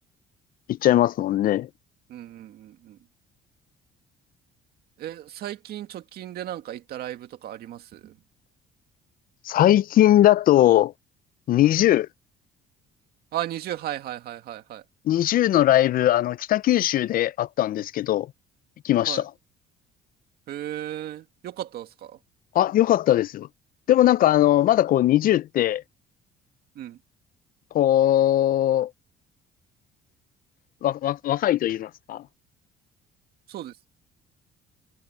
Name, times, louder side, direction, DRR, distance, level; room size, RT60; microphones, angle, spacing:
voice 1, 0.7-1.7 9.5-10.9 11.5-12.1 15.1-18.3 18.8-19.3 22.5-23.5 23.9-25.8 27.7-28.9 30.8-32.2, left 13 dB, 60° left, 0.6 m, -20 dB
voice 2, 2.1-3.0 5.0-8.2 13.3-14.8 19.1-19.2 20.5-22.2 26.8-27.0 33.5-33.9, right 12 dB, 70° right, 2.1 m, -35 dB
cardioid pair, 110°, 17 cm